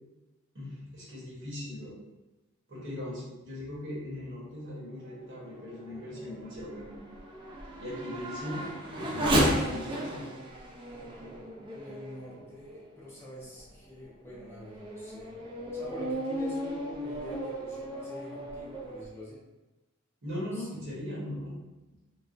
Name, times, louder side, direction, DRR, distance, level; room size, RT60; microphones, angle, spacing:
voice 1, 0.5-1.9 2.7-7.0 7.8-10.3 20.2-21.6, left 1 dB, 60° right, -6 dB, 1.0 m, -39 dB
Race car auto racing / Accelerating revving vroom, 5.0-13.0 13.6-13.7 14.3-19.1, equal, 25° right, 0.4 m, -34 dB
voice 2, 11.7-15.3 15.7-19.4 20.5-20.7, left 2 dB, 10° left, -8 dB, 0.7 m, -46 dB
3.2 x 2.0 x 2.5 m, 1.1 s
head